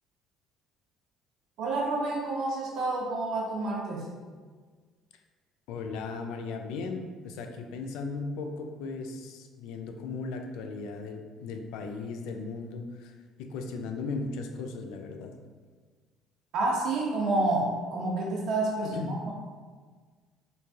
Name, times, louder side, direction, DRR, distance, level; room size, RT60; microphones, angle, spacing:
voice 1, 1.6-4.1 16.5-19.3, right 2 dB, 60° right, -3 dB, 0.8 m, -29 dB
voice 2, 5.7-15.3 18.8-19.2, left 4 dB, 80° left, 5 dB, 0.3 m, -37 dB
3.2 x 2.5 x 3.4 m, 1.5 s
cardioid pair, 165°, 0 cm